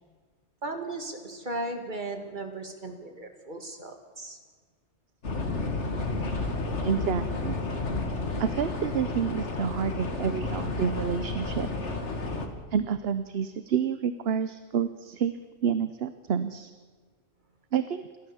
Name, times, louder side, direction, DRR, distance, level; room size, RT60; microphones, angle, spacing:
voice 1, 0.6-4.4, right 2 dB, 40° right, 5 dB, 2.3 m, -36 dB
sound 1, 5.2-12.5, left 2 dB, 75° left, 2.2 m, -31 dB
voice 2, 6.8-7.6 8.4-11.7 12.7-15.3 15.6-16.7 17.7-18.1, right 7 dB, 60° right, 12 dB, 0.9 m, -29 dB
28.5 x 12.5 x 7.1 m, 1.5 s
omnidirectional pair, 1.2 m